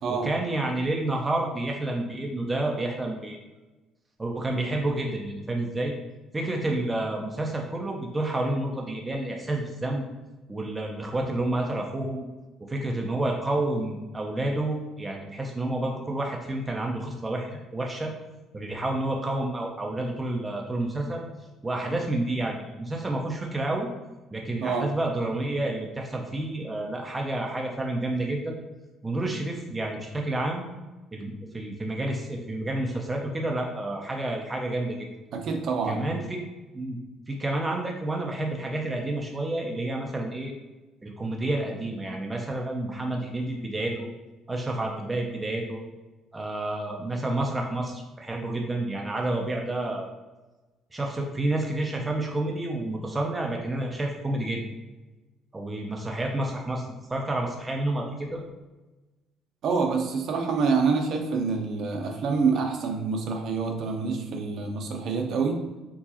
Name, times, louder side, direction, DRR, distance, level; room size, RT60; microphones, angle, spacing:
voice 1, 0.1-3.4 4.2-5.9 6.3-10.0 10.5-12.3 12.7-18.1 18.5-21.2 21.6-23.9 24.3-28.5 29.0-30.6 31.1-35.1 35.9-36.4 36.7-37.0 37.3-40.5 41.0-44.1 44.5-45.8 46.3-50.1 50.9-54.6 55.5-58.4, right 2 dB, 15° right, 0 dB, 0.4 m, -29 dB
voice 2, 35.3-36.1 59.6-65.6, right 4 dB, 50° right, 3 dB, 0.7 m, -26 dB
4.5 x 3.9 x 2.8 m, 1.1 s
cardioid pair, 150°, 0 cm